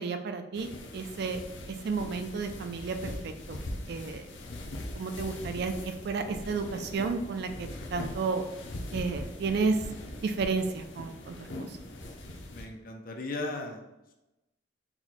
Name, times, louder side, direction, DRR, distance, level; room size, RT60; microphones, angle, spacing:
voice 1, 0.0-1.4 1.7-3.6 3.9-4.3 4.9-8.4 8.9-9.9 10.2-11.8, right 4 dB, 60° right, 7 dB, 0.4 m, -32 dB
sound 1, 0.5-12.7, left 1 dB, 90° left, 0.7 m, -41 dB
sound 2, 7.3-7.4 7.8-7.9 8.2-8.3 9.1-10.7 11.4-11.6 12.0-12.2 12.6-12.7, right 1 dB, 15° right, 0.7 m, -46 dB
voice 2, 12.5-13.8, left 2 dB, 50° left, 3 dB, 0.6 m, -36 dB
4.5 x 2.2 x 4.1 m, 0.97 s
head